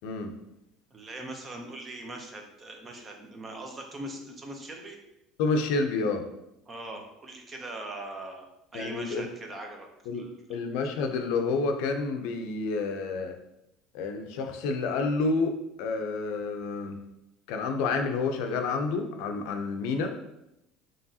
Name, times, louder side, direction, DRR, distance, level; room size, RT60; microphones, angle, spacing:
voice 1, 0.9-5.0 6.7-8.5 8.7-9.9 10.1-10.6, right 1 dB, 20° right, 3 dB, 0.6 m, -41 dB
voice 2, 5.4-6.2 8.7-9.3 10.1-10.2 10.5-13.4 13.9-17.0 17.5-20.1, left 4 dB, 70° left, 5 dB, 0.5 m, -29 dB
4.7 x 3.0 x 2.7 m, 0.84 s
cardioid pair, 155°, 0 cm